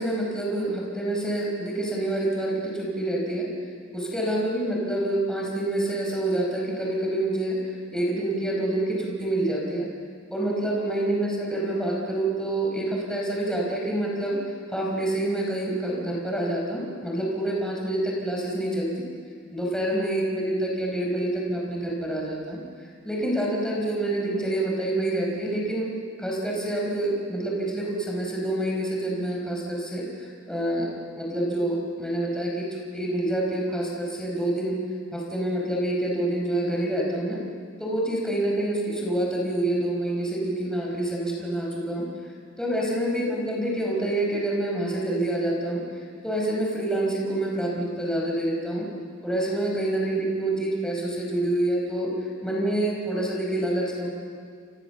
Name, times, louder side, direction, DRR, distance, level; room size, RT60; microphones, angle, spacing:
voice 1, 0.0-3.5 3.9-7.6 7.9-9.9 10.3-14.4 14.7-19.1 19.5-22.6 23.0-25.9 26.2-32.7 32.9-34.8 35.1-37.4 37.8-42.1 42.6-45.8 46.2-48.9 49.2-52.1 52.4-54.1, right 1 dB, 5° left, -3 dB, 5.0 m, -27 dB
29.5 x 28.5 x 7.1 m, 2.2 s
head